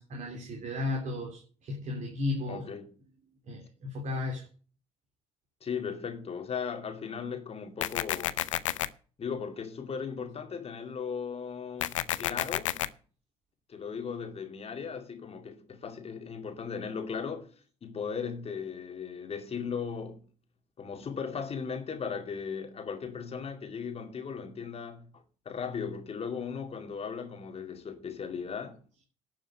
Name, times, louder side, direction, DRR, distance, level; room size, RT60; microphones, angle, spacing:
voice 1, 0.0-2.6 3.5-4.5, left 2 dB, 50° right, 3.2 m, -34 dB
voice 2, 2.5-2.9 5.6-8.4 9.2-12.9 13.7-17.5 17.8-20.3 20.8-28.8, left 6 dB, 40° left, 2.4 m, -37 dB
sound 1, 7.8-8.9 11.8-12.9, left 13 dB, 80° left, 0.5 m, -30 dB
11.5 x 6.7 x 8.0 m
figure-of-eight pair, 50°, 16 cm